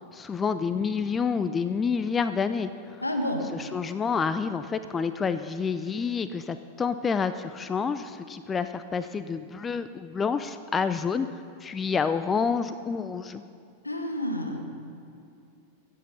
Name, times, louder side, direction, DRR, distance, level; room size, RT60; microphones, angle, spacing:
voice 1, 0.0-3.1 3.4-11.3 11.6-13.4, left 5 dB, 20° left, 11 dB, 0.5 m, -28 dB
voice 2, 3.0-3.4 13.8-14.6, left 1 dB, 85° left, 4 dB, 1.5 m, -29 dB
22.5 x 8.3 x 5.5 m, 2.6 s
figure-of-eight pair, 90°, 0 cm